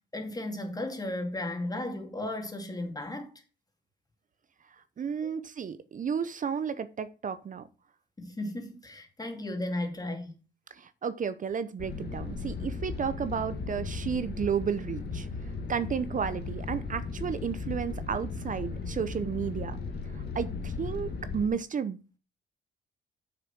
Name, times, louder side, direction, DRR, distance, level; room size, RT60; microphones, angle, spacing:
voice 1, 0.1-3.3 8.2-10.3, left 1 dB, 20° left, 2.5 m, -35 dB
voice 2, 5.0-7.7 10.8-15.3 15.7-19.8 20.1-22.2, right 7 dB, 40° right, 0.7 m, -32 dB
sound 1, 11.8-21.5, left 4 dB, 55° left, 2.0 m, -36 dB
7.1 x 6.7 x 5.9 m
cardioid pair, 90°, 20 cm